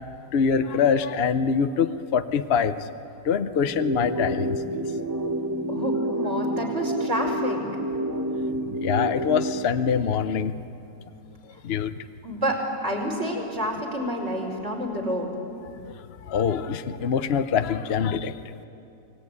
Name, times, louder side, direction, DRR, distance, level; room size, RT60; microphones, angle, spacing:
voice 1, 0.3-2.7 3.2-4.8 8.8-10.6 11.6-11.9 15.8-15.9 16.3-18.3, left 6 dB, 50° left, 10 dB, 0.8 m, -24 dB
sound 1, 3.7-9.7, right 1 dB, 15° right, 0.9 m, -28 dB
voice 2, 5.7-7.6 12.2-15.3, equal, 40° right, -1 dB, 5.2 m, -28 dB
28.0 x 19.0 x 9.7 m, 2.7 s
omnidirectional pair, 1.8 m